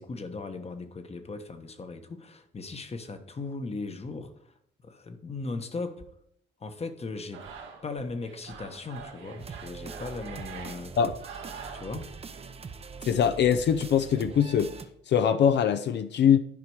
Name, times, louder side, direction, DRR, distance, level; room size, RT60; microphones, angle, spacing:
voice 1, 0.0-4.3 4.8-6.0 6.6-7.5 7.8-11.0 11.7-12.1, left 3 dB, 30° left, 1.0 m, -38 dB
sound 1, 7.3-12.5, right 6 dB, 75° right, 1.6 m, -45 dB
sound 2, 9.4-14.9, right 5 dB, 30° right, 0.7 m, -43 dB
voice 2, 13.1-14.7 15.1-16.4, left 8 dB, 60° left, 0.6 m, -22 dB
11.0 x 5.0 x 4.7 m
cardioid pair, 90°, 20 cm